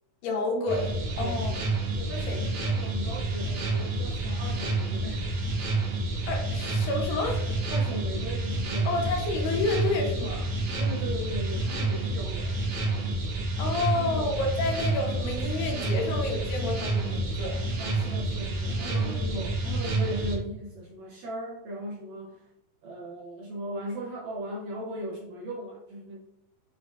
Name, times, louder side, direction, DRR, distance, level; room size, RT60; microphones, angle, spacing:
voice 1, 0.2-0.9 1.2-1.5 2.3-2.4 6.3-7.4 8.9-10.5 13.6-17.7 19.0-19.1, left 3 dB, 75° left, 2 dB, 2.2 m, -29 dB
sound 1, 0.7-20.4, right 2 dB, 65° right, 1.9 m, -29 dB
voice 2, 1.2-1.6 2.0-5.4 7.7-8.9 10.8-13.1 13.9-14.3 17.8-22.5 22.8-26.2, right 1 dB, 80° right, -4 dB, 1.6 m, -38 dB
7.0 x 2.4 x 2.3 m, 0.84 s
omnidirectional pair, 4.0 m